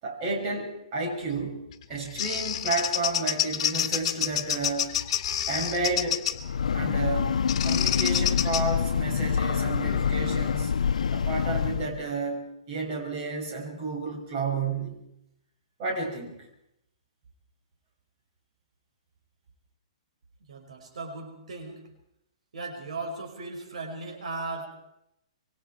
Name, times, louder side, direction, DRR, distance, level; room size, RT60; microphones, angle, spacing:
voice 1, 0.0-1.6 1.9-4.9 5.5-6.2 6.7-7.3 7.6-10.7 11.1-15.0 15.8-16.5, right 3 dB, 35° right, 0 dB, 7.5 m, -31 dB
Bird vocalization bird call bird song, 1.7-6.5 7.5-8.6, left 10 dB, 50° left, 2.3 m, -28 dB
Breathing / Train, 6.3-12.0, left 7 dB, 80° left, 0.9 m, -26 dB
voice 2, 20.5-21.8 22.5-24.7, right 3 dB, 75° right, 2 dB, 5.9 m, -37 dB
26.5 x 24.0 x 4.7 m, 0.81 s
hypercardioid pair, 155°, 4 cm